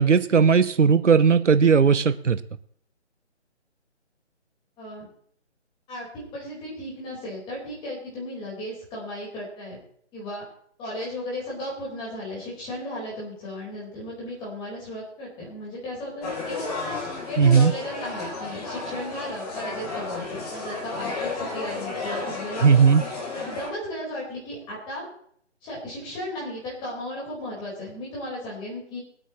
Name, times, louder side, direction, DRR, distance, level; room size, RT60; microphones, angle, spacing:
voice 1, 0.0-2.4 17.4-17.7 22.6-23.0, right 6 dB, 85° right, 13 dB, 1.0 m, -17 dB
voice 2, 4.8-5.1 5.9-9.8 10.1-10.4 10.8-16.6 17.3-22.7 23.3-25.1 25.6-29.0, left 1 dB, 15° left, -5 dB, 4.6 m, -35 dB
sound 1, 16.2-23.7, left 3 dB, 35° left, 3.6 m, -33 dB
22.5 x 9.1 x 3.1 m, 0.64 s
figure-of-eight pair, 155°, 36 cm